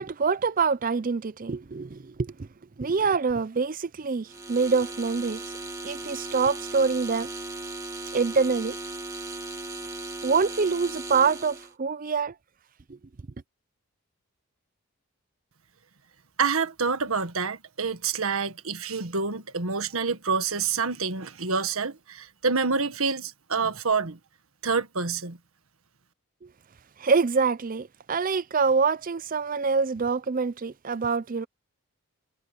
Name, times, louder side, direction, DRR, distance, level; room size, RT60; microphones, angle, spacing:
voice 1, 0.0-2.5 2.8-5.4 5.8-7.3 8.1-8.8 10.2-12.3 12.9-13.0 26.4-26.5 27.0-31.5, right 5 dB, 40° right, 0.5 m, -25 dB
sound 1, 4.3-11.7, right 2 dB, 15° right, 1.9 m, -37 dB
voice 2, 16.4-24.2 24.6-25.4, right 5 dB, 75° right, 1.6 m, -27 dB
head